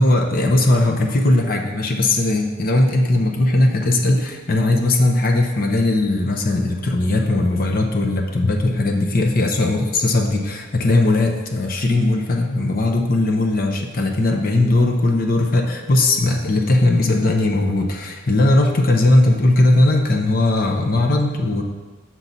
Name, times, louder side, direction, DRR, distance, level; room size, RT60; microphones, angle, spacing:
voice 1, 0.0-21.6, left 2 dB, 45° left, 2 dB, 0.7 m, -18 dB
6.1 x 5.8 x 4.0 m, 1.3 s
head